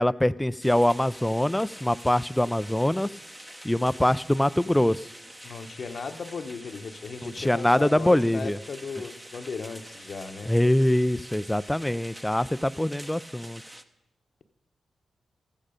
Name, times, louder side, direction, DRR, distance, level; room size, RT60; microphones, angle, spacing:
voice 1, 0.0-3.1 3.6-5.1 7.2-8.6 10.5-13.6, left 1 dB, 10° left, 18 dB, 0.4 m, -23 dB
sound 1, 0.6-13.8, right 1 dB, 15° right, 0.9 m, -46 dB
voice 2, 5.4-10.5, left 4 dB, 65° left, 8 dB, 0.9 m, -37 dB
14.0 x 8.8 x 5.1 m, 0.92 s
cardioid pair, 50°, 0 cm